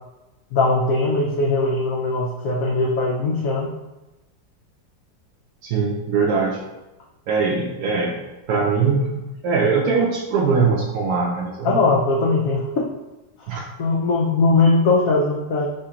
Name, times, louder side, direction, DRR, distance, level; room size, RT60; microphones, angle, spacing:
voice 1, 0.5-3.7 11.6-12.9 13.8-15.7, left 3 dB, 80° left, -1 dB, 0.7 m, -20 dB
voice 2, 5.6-6.6 7.3-8.2 8.5-11.8 13.5-13.6, right 4 dB, 70° right, -2 dB, 0.9 m, -21 dB
5.0 x 2.8 x 3.6 m, 1.0 s
omnidirectional pair, 2.1 m